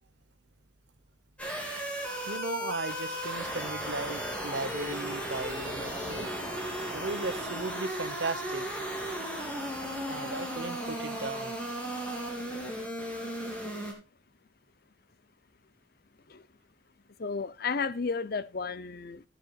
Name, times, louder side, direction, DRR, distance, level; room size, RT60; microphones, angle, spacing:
sound 1, 1.4-13.9, equal, 5° left, 3.2 m, -35 dB
voice 1, 2.2-6.3 6.9-8.6 10.1-11.5, right 3 dB, 65° right, 1.0 m, -36 dB
voice 2, 17.2-19.2, left 5 dB, 50° left, 0.7 m, -33 dB
13.5 x 10.0 x 2.4 m
head